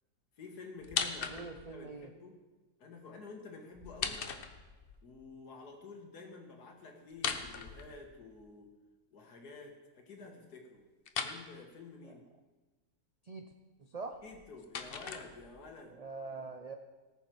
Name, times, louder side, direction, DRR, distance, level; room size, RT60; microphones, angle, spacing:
voice 1, 0.4-2.4 2.8-4.3 5.0-8.7 9.1-10.8 11.2-12.2 14.2-16.0, left 4 dB, 90° left, 3 dB, 2.1 m, -50 dB
sound 1, 0.8-1.8 3.7-5.0 7.1-8.4 11.0-11.4 14.1-15.7, left 6 dB, 50° left, 0.8 m, -39 dB
voice 2, 1.3-2.1 12.0-12.1 13.2-13.5 13.8-14.2 15.9-16.8, right 3 dB, 85° right, 5 dB, 0.3 m, -44 dB
18.5 x 6.8 x 4.6 m, 1.2 s
omnidirectional pair, 1.6 m